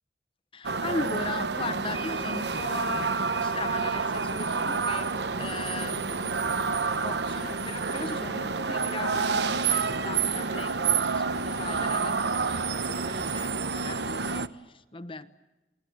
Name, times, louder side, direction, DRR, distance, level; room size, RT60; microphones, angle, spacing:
voice 1, 0.5-5.1 5.4-6.7 7.0-15.3, left 3 dB, 30° left, 11 dB, 1.0 m, -38 dB
sound 1, 0.6-14.5, right 5 dB, 75° right, 1.0 m, -29 dB
29.0 x 20.5 x 7.9 m, 1.1 s
head